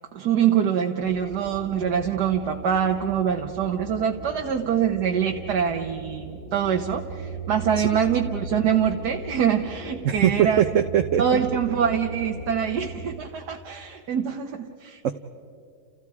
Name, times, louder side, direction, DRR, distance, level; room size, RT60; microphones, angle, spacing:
voice 1, 0.1-10.6 11.2-15.1, right 8 dB, 90° right, 2 dB, 1.7 m, -24 dB
sound 1, 1.0-13.1, right 3 dB, 85° left, 7.3 m, -37 dB
voice 2, 10.0-11.2 15.0-15.1, right 10 dB, 60° right, 7 dB, 1.1 m, -21 dB
30.0 x 30.0 x 4.8 m, 2.3 s
omnidirectional pair, 1.7 m